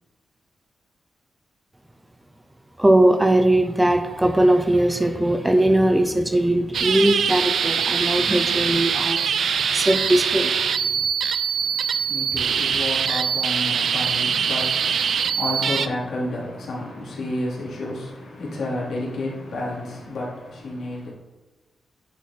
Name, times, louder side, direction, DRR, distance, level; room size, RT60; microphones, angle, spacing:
voice 1, 2.8-10.5, right 1 dB, 10° right, 0.5 m, -20 dB
sound 1, 6.7-15.9, right 7 dB, 75° right, 0.4 m, -23 dB
voice 2, 11.5-21.1, left 1 dB, 75° left, 2.5 m, -31 dB
10.0 x 4.6 x 4.2 m
wide cardioid pair, 145°, 0 cm